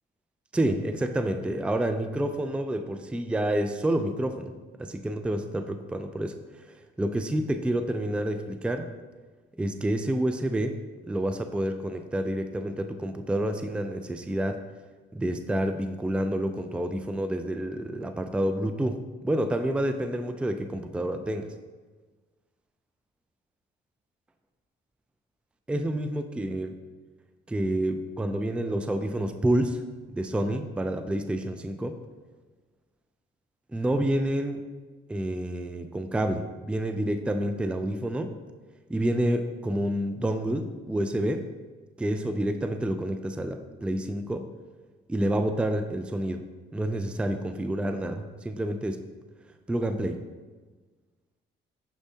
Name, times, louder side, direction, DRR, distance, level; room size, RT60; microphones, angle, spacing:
voice 1, 0.5-4.5 4.8-6.4 7.0-8.9 9.6-10.8 11.1-14.6 15.1-21.5 25.7-26.7 27.5-29.8 30.1-32.0 33.7-34.6 35.1-38.4 38.9-41.5 42.0-44.5 45.1-46.5 46.7-49.0 49.7-50.2, right 1 dB, 5° right, 8 dB, 0.4 m, -28 dB
6.7 x 6.1 x 2.8 m, 1.4 s
cardioid pair, 90°, 20 cm